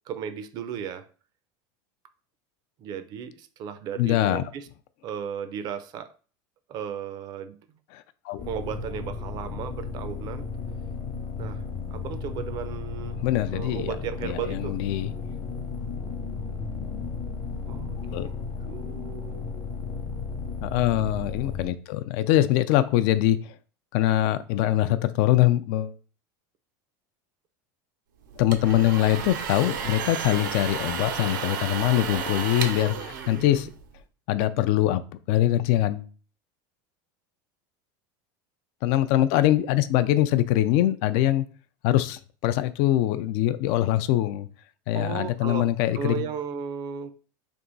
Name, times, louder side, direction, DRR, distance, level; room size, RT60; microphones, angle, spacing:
voice 1, 0.1-1.1 2.8-4.7 5.0-6.1 6.7-7.6 8.5-10.5 11.4-11.6 11.9-13.2 13.5-14.8 17.7-18.3 18.6-19.4 32.9-33.7 44.9-47.1, right 8 dB, 40° right, 0.5 m, -35 dB
voice 2, 4.0-4.4 7.9-8.4 13.2-13.9 14.2-15.1 18.1-18.3 20.6-23.5 23.9-25.9 28.4-33.7 34.3-35.0 35.3-36.1 38.8-41.4 41.8-44.5 44.9-46.3, left 13 dB, 60° left, 0.4 m, -23 dB
sound 1, 8.4-21.6, left 5 dB, 35° left, 0.8 m, -34 dB
sound 2, 28.3-34.0, right 7 dB, 85° right, 0.7 m, -33 dB
3.5 x 2.9 x 4.0 m
supercardioid pair, 135°, 10 cm